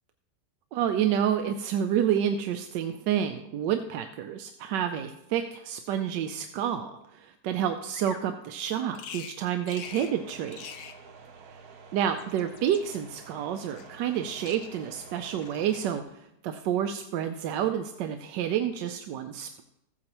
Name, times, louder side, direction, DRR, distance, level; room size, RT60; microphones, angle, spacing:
voice 1, 0.7-10.7 11.9-16.0 16.4-19.6, right 9 dB, 90° right, 6 dB, 1.2 m, -29 dB
Bird vocalization bird call bird song, 7.9-8.3 8.9-9.4 9.7-10.2 10.5-11.0 12.0-13.0 13.8-14.2 14.5-14.9 15.4-15.8, left 8 dB, 60° left, 1.0 m, -45 dB
sound 1, 9.8-16.0, right 5 dB, 65° right, 1.3 m, -49 dB
15.0 x 8.6 x 3.0 m, 0.83 s
omnidirectional pair, 1.8 m